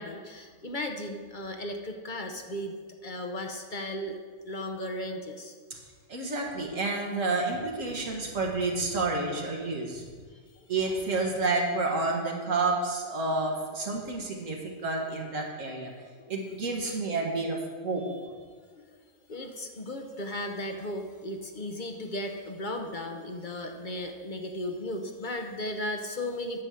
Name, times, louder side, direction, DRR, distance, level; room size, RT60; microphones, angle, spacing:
voice 1, 0.0-2.7 3.0-4.1 4.5-5.5 16.8-17.0 18.1-18.2 18.8-19.0 19.3-26.6, left 1 dB, 40° left, 4 dB, 0.8 m, -36 dB
voice 2, 6.1-10.0 10.7-15.9 16.3-17.6 17.8-18.0, right 3 dB, 60° right, 0 dB, 1.8 m, -29 dB
9.7 x 5.4 x 7.6 m, 1.6 s
omnidirectional pair, 1.5 m